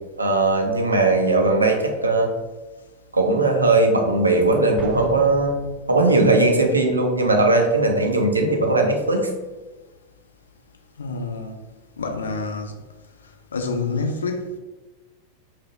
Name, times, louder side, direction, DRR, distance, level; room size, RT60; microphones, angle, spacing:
voice 1, 0.2-2.3 3.1-5.6 5.9-9.3, right 2 dB, 80° right, 2 dB, 0.4 m, -19 dB
Explosion, 4.8-6.4, right 1 dB, 15° right, 0.4 m, -38 dB
voice 2, 11.0-11.5 12.0-12.8 13.5-14.6, left 3 dB, 70° left, 4 dB, 0.3 m, -27 dB
2.7 x 2.0 x 2.9 m, 1.2 s
figure-of-eight pair, 90°, 0 cm